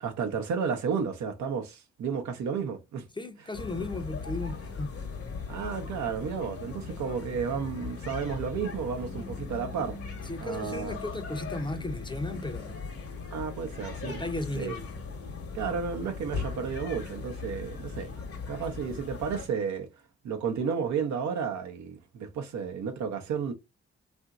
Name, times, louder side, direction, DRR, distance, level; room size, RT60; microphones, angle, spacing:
voice 1, 0.0-3.0 5.5-10.0 10.4-11.0 13.3-14.2 14.5-14.7 15.5-18.1 18.5-19.9 20.2-23.5, right 6 dB, 65° right, 0.7 m, -32 dB
voice 2, 3.1-4.9 10.3-12.8 14.1-14.9, left 2 dB, 15° left, 0.6 m, -35 dB
sound 1, 3.5-19.5, left 5 dB, 50° left, 1.0 m, -39 dB
2.8 x 2.6 x 2.3 m
hypercardioid pair, 45°, 31 cm